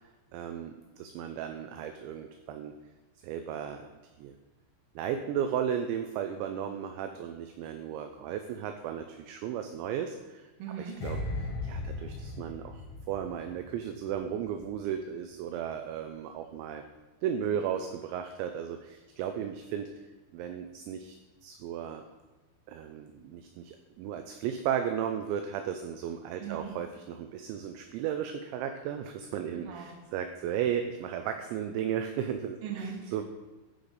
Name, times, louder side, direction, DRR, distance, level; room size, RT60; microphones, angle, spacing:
voice 1, 0.3-2.7 3.2-3.9 4.2-4.4 5.0-10.5 11.0-16.8 17.2-19.9 20.3-21.2 21.4-22.0 22.7-32.6 33.1-33.2, right 9 dB, 80° right, 6 dB, 2.7 m, -35 dB
voice 2, 10.6-11.0 26.4-26.7 29.6-29.9 32.6-33.2, right 7 dB, 60° right, -2 dB, 2.9 m, -39 dB
sound 1, 11.0-14.2 14.5-14.7, left 2 dB, 70° left, 3.2 m, -37 dB
14.5 x 5.1 x 4.0 m, 1.2 s
omnidirectional pair, 5.6 m